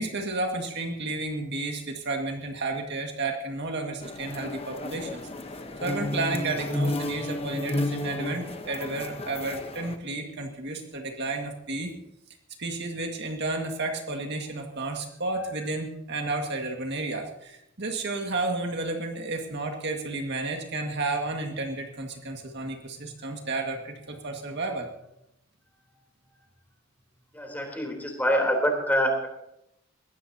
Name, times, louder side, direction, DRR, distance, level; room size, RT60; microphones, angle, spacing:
voice 1, 0.0-5.2 5.8-11.9 12.6-24.9, right 2 dB, 60° right, 3 dB, 1.9 m, -32 dB
sound 1, 4.0-10.0, left 1 dB, 30° left, 1.0 m, -32 dB
voice 2, 27.3-29.3, equal, 10° left, 2 dB, 3.5 m, -25 dB
21.0 x 16.0 x 2.8 m, 0.80 s
head